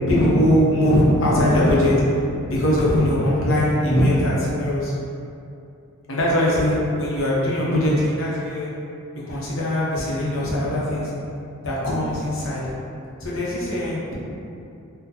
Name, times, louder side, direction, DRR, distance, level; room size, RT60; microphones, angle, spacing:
voice 1, 0.1-2.0 2.5-4.9 6.1-8.7 9.1-11.1 11.6-12.6 13.2-14.1, left 1 dB, 70° left, -6 dB, 0.8 m, -21 dB
3.7 x 2.1 x 2.8 m, 2.6 s
head